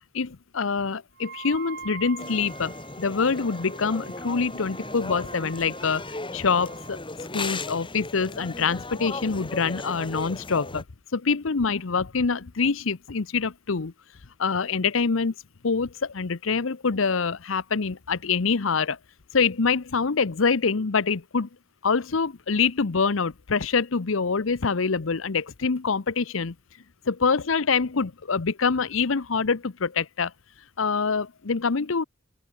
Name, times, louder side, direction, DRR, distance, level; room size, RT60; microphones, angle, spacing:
voice 1, 0.1-7.0 7.3-10.8 11.1-13.9 14.4-15.3 15.6-19.0 19.3-21.5 21.8-26.5 27.1-30.3 30.8-32.0, left 5 dB, 75° left, 0.8 m, -25 dB
Wind instrument woodwind instrument, 1.2-7.0, right 5 dB, 55° right, 6.5 m, -44 dB
sound 1, 2.2-10.8, left 3 dB, 25° left, 3.4 m, -37 dB
open air
head